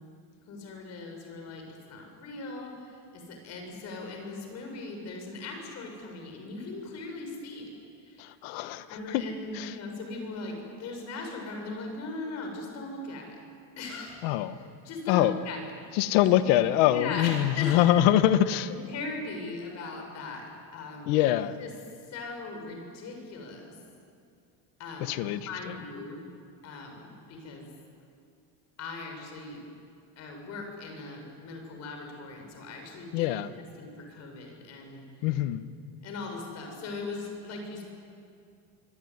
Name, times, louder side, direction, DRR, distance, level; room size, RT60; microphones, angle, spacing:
voice 1, 0.5-2.7 3.1-7.7 8.1-8.2 8.9-13.4 13.8-14.3 14.8-15.9 16.2-16.3 16.9-17.8 18.7-20.4 20.7-21.1 21.6-21.7 22.1-23.7 24.8-26.2 26.6-27.7 28.8-29.6 30.2-33.3 33.8-35.0 36.0-37.8, left 3 dB, 40° left, 3 dB, 6.6 m, -39 dB
voice 2, 8.2-9.3 9.5-9.7 14.2-14.5 15.1-15.4 15.9-18.7 21.1-21.6 25.0-25.8 33.1-33.5 35.2-35.6, left 13 dB, 70° left, 12 dB, 1.4 m, -24 dB
24.5 x 24.5 x 9.7 m, 2.4 s
cardioid pair, 175°, 41 cm